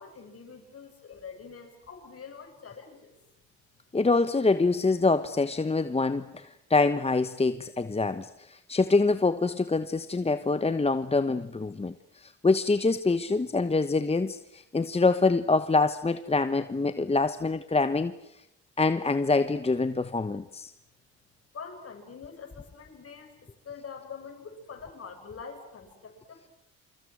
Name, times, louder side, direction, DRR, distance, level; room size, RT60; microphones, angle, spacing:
voice 1, 0.0-3.2 21.5-26.5, left 5 dB, 50° left, 4 dB, 7.7 m, -45 dB
voice 2, 3.9-11.9 12.2-18.1 18.8-20.7, left 3 dB, 20° left, 11 dB, 1.2 m, -25 dB
28.5 x 26.0 x 6.4 m, 0.80 s
supercardioid pair, 60°, 29 cm